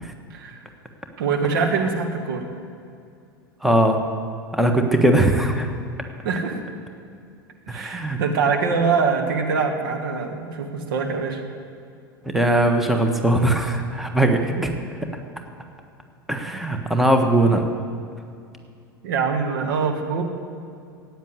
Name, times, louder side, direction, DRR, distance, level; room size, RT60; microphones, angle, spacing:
voice 1, 1.2-2.5 6.2-6.6 7.7-11.4 14.6-14.7 19.0-20.2, right 5 dB, 65° right, 3 dB, 2.0 m, -24 dB
voice 2, 3.6-4.0 4.5-5.7 7.7-8.2 12.2-14.7 16.3-17.7, right 1 dB, ahead, 4 dB, 1.4 m, -20 dB
15.0 x 9.4 x 8.2 m, 2.4 s
figure-of-eight pair, 85°, 12 cm